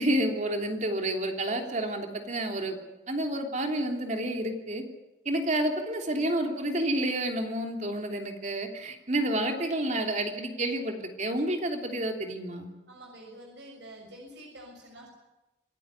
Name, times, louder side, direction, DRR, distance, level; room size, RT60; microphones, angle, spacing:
voice 1, 0.0-2.8 3.1-4.8 5.2-12.7, right 1 dB, 40° right, 3 dB, 3.1 m, -29 dB
voice 2, 12.9-15.1, right 1 dB, 75° right, 1 dB, 6.7 m, -47 dB
26.5 x 16.0 x 9.7 m, 1.0 s
head